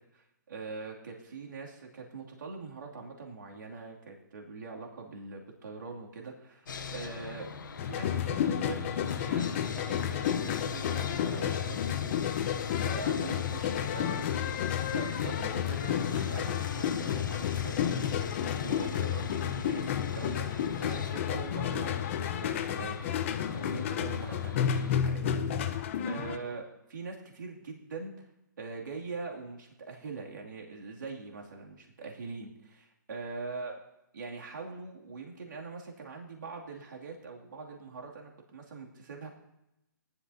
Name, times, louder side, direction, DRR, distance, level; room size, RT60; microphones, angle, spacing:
voice 1, 0.1-7.5 7.8-14.6 14.9-25.2 25.6-28.3 28.6-33.7 34.1-39.3, right 4 dB, 70° right, -1 dB, 2.6 m, -43 dB
Sawing, 6.7-24.9, left 5 dB, 70° left, 1.2 m, -41 dB
sound 1, 7.8-26.4, left 9 dB, 35° left, 0.9 m, -31 dB
19.0 x 11.5 x 2.8 m, 0.88 s
hypercardioid pair, 150°, 11 cm